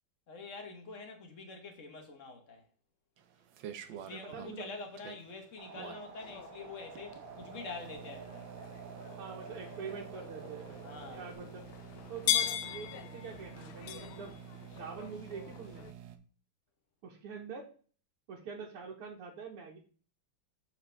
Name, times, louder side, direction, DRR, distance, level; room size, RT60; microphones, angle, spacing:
voice 1, 0.3-2.6 3.9-8.5 10.8-11.2 14.7-14.8, left 3 dB, 40° left, 1.3 m, -46 dB
sound 1, 3.2-16.2, right 9 dB, 70° right, 1.4 m, -50 dB
voice 2, 4.2-4.7 9.2-10.7 11.1-11.7 12.1-14.3 14.7-15.9 17.0-17.7 18.3-19.8, right 5 dB, 85° right, 2.1 m, -45 dB
sound 2, 5.6-11.3, right 4 dB, 45° right, 1.4 m, -50 dB
sound 3, 6.2-15.9, left 10 dB, 75° left, 1.4 m, -40 dB
7.6 x 5.9 x 3.3 m
omnidirectional pair, 2.4 m